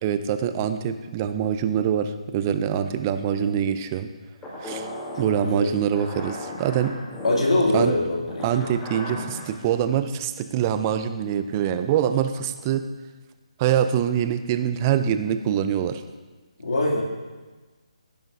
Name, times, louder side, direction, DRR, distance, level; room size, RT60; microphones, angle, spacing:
voice 1, 0.0-4.1 4.6-4.9 5.2-6.9 7.7-7.9 8.4-12.9 13.6-16.0, right 9 dB, 25° right, 9 dB, 0.5 m, -24 dB
sound 1, 4.4-9.6, left 1 dB, 15° left, 2.1 m, -36 dB
voice 2, 7.2-8.6 16.6-17.0, left 2 dB, 70° left, -3 dB, 2.6 m, -23 dB
16.0 x 7.1 x 2.7 m, 1.3 s
figure-of-eight pair, 150°, 4 cm